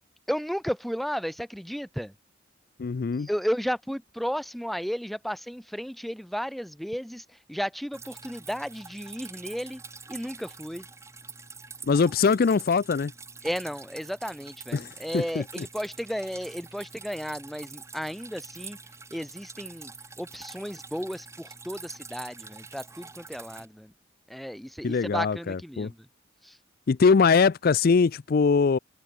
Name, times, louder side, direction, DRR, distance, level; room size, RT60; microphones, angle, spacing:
voice 1, 0.3-2.1 3.2-7.2 7.5-9.8 10.1-10.8 13.4-18.8 19.1-19.9 20.2-23.9 24.3-26.0 26.4-26.5, equal, ahead, 0.5 m, -33 dB
voice 2, 2.8-3.3 11.8-13.1 14.7-15.7 24.8-25.9 26.9-28.8, left 5 dB, 50° left, 0.4 m, -22 dB
Drip, 7.9-23.7, right 4 dB, 15° right, 1.5 m, -46 dB
head